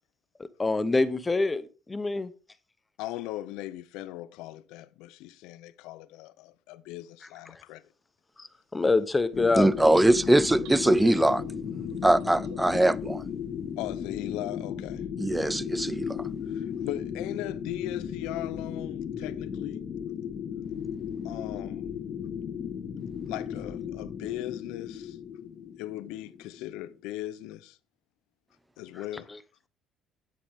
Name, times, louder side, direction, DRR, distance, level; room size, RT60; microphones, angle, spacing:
voice 1, 0.6-2.3 8.4-8.5 8.7-9.7 10.0-10.4, left 3 dB, 20° left, 0.8 m, -26 dB
voice 2, 3.0-7.8 13.8-15.0 16.5-19.8 21.2-21.9 23.3-25.2 25.8-27.8 28.8-29.3, left 15 dB, 85° left, 0.5 m, -38 dB
sound 1, 9.3-27.0, left 8 dB, 55° left, 1.6 m, -35 dB
voice 3, 9.6-11.4 12.0-13.2 15.2-16.2, right 1 dB, 10° right, 0.4 m, -22 dB
sound 2, 10.3-12.8, right 6 dB, 90° right, 1.5 m, -48 dB
9.6 x 8.3 x 3.6 m
supercardioid pair, 90°, 0 cm